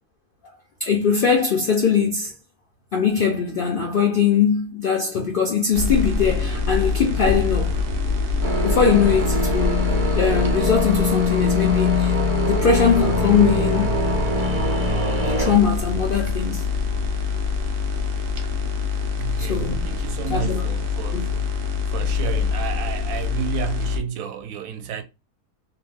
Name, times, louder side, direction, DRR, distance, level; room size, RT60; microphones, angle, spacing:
voice 1, 0.8-2.3 2.9-7.8 8.6-12.2 12.5-14.0 15.4-16.6 19.4-20.0 20.3-20.6 21.1-21.2, left 6 dB, 90° left, 0.4 m, -21 dB
sound 1, 5.7-24.0, left 5 dB, 60° right, 0.6 m, -25 dB
sound 2, 8.4-15.6, left 1 dB, 20° right, 0.4 m, -24 dB
voice 2, 19.2-21.5 21.9-25.0, right 7 dB, 75° right, 1.0 m, -31 dB
2.7 x 2.1 x 3.2 m
omnidirectional pair, 1.6 m